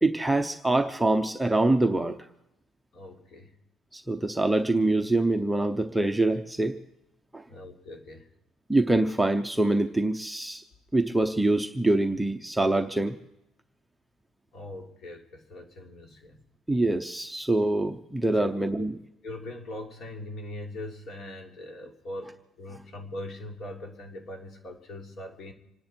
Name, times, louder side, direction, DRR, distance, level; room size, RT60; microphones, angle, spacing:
voice 1, 0.0-2.2 3.9-6.8 7.3-7.4 8.7-10.6 10.9-13.2 16.7-18.9, right 2 dB, 5° right, 4 dB, 0.8 m, -25 dB
voice 2, 2.9-3.5 7.5-8.3 14.5-16.4 18.3-18.5 18.8-18.9 19.2-25.5, left 1 dB, 50° left, 1 dB, 3.3 m, -41 dB
27.0 x 10.0 x 4.5 m, 0.86 s
cardioid pair, 145°, 0 cm